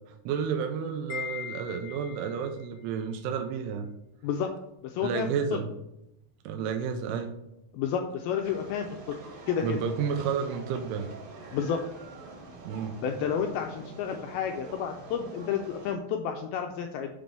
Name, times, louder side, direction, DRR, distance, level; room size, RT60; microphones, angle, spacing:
voice 1, 0.3-3.9 5.0-5.7 6.4-7.4 9.6-11.1 12.6-13.0, right 7 dB, 85° right, 5 dB, 2.7 m, -31 dB
Wind chime, 1.1-2.5, left 8 dB, 65° left, 1.8 m, -39 dB
voice 2, 4.8-5.6 7.7-9.2 9.5-9.8 11.5-11.8 13.0-17.1, left 8 dB, 85° left, 3 dB, 2.2 m, -31 dB
sound 1, 8.4-15.9, right 2 dB, 55° right, 1.8 m, -46 dB
7.2 x 3.4 x 5.2 m, 0.84 s
omnidirectional pair, 4.7 m